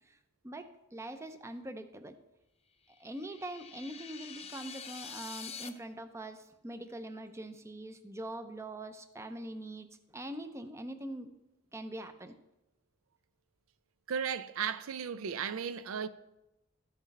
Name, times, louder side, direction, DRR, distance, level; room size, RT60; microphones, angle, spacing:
voice 1, 0.4-2.2 2.9-9.9 10.1-11.3 11.7-12.3, right 1 dB, 15° right, 0.6 m, -43 dB
sound 1, 2.9-5.7, left 7 dB, 30° left, 0.6 m, -46 dB
voice 2, 14.1-16.1, right 7 dB, 75° right, 0.4 m, -35 dB
13.5 x 6.1 x 4.1 m
head